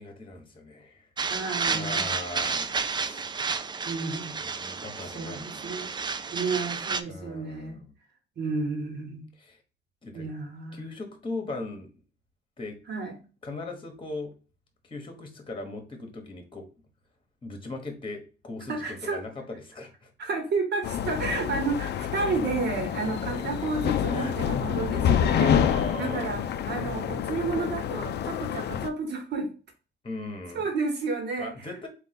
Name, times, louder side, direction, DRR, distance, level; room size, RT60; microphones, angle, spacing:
voice 1, 0.0-1.1 1.7-3.5 4.4-6.0 7.1-7.9 9.4-9.6 10.0-10.3 10.7-11.9 12.6-12.8 13.4-14.3 14.8-16.6 17.4-20.1 23.3-24.3 25.4-26.4 30.0-30.7 31.4-31.9, left 2 dB, 25° left, 5 dB, 1.0 m, -39 dB
sound 1, 1.2-7.0, right 5 dB, 25° right, 0.3 m, -31 dB
voice 2, 1.3-2.1 3.8-4.4 5.1-5.9 6.3-7.8 8.4-9.3 10.1-10.9 12.9-13.1 18.7-19.2 20.2-25.6 26.0-29.5 30.5-31.7, right 4 dB, 60° right, 3 dB, 1.3 m, -31 dB
sound 2, 20.8-28.9, left 8 dB, 60° left, 0.4 m, -27 dB
3.6 x 2.4 x 4.0 m, 0.35 s
cardioid pair, 90°, 20 cm